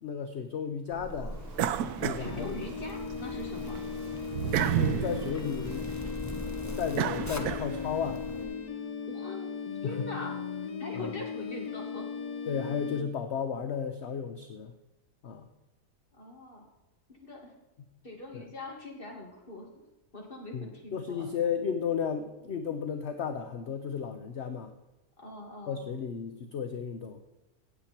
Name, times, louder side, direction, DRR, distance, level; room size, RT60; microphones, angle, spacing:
voice 1, 0.0-1.4 2.0-2.5 4.5-5.9 6.8-8.2 9.8-10.1 10.9-11.1 12.5-14.7 15.2-15.5 18.3-18.5 20.5-24.7 25.7-27.2, left 7 dB, 55° left, 7 dB, 0.9 m, -34 dB
Zipper (clothing), 0.9-8.4, left 1 dB, 15° left, 0.7 m, -41 dB
sound 1, 1.5-3.1 3.5-8.1, right 10 dB, 85° right, 1.1 m, -32 dB
voice 2, 2.1-3.8 9.1-9.5 9.8-10.4 10.8-12.1 16.1-16.7 17.1-17.6 18.0-19.7 20.1-21.3 25.2-25.8, left 2 dB, 35° left, 0 dB, 2.5 m, -42 dB
sound 2, 2.2-13.0, left 6 dB, 80° left, 1.5 m, -37 dB
16.5 x 7.5 x 4.4 m, 1.0 s
omnidirectional pair, 1.6 m